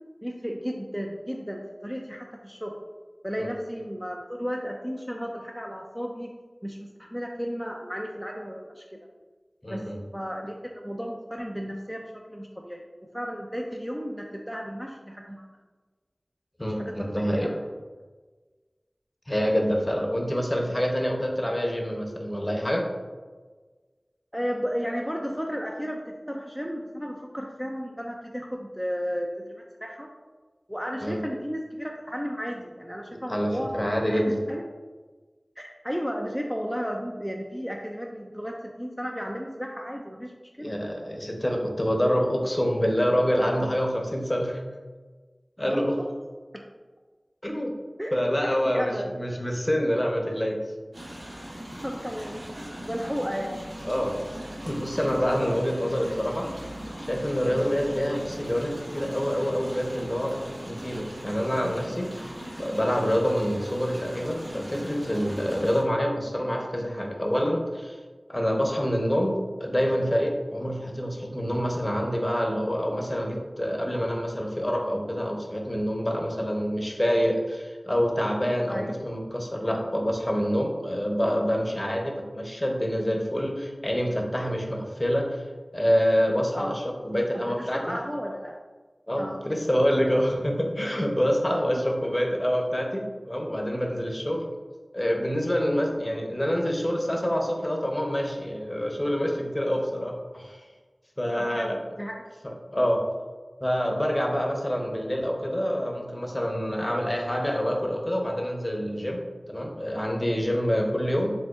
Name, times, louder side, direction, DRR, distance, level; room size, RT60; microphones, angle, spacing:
voice 1, 0.2-2.8 3.2-6.3 6.6-9.0 9.7-9.8 10.1-12.8 13.1-15.4 16.7-17.5 24.3-29.5 29.8-30.1 30.7-33.7 34.1-34.6 35.6-40.3 40.6-40.7 41.5-41.6 45.6-45.8 46.5-46.6 48.0-48.1 48.7-49.1 51.8-52.4 52.8-53.7 65.5-65.7 78.7-78.9 86.5-86.8 87.3-88.6 89.2-89.6 91.9-92.0 94.2-94.3 101.4-102.3, equal, 5° right, 0 dB, 0.4 m, -34 dB
voice 2, 9.6-10.0 16.6-17.5 19.3-22.8 31.0-31.2 33.3-34.4 40.6-44.6 45.6-45.9 47.4-47.7 48.1-50.6 53.8-54.2 54.7-56.5 57.0-60.4 60.6-68.0 68.3-85.4 85.7-88.0 89.1-94.4 94.9-100.6 101.2-101.8 102.4-103.0 103.6-111.3, equal, 30° left, 1 dB, 0.7 m, -26 dB
sound 1, 50.9-65.8, equal, 65° right, 1.3 m, -39 dB
5.0 x 3.4 x 2.4 m, 1.4 s
wide cardioid pair, 40°, 0 cm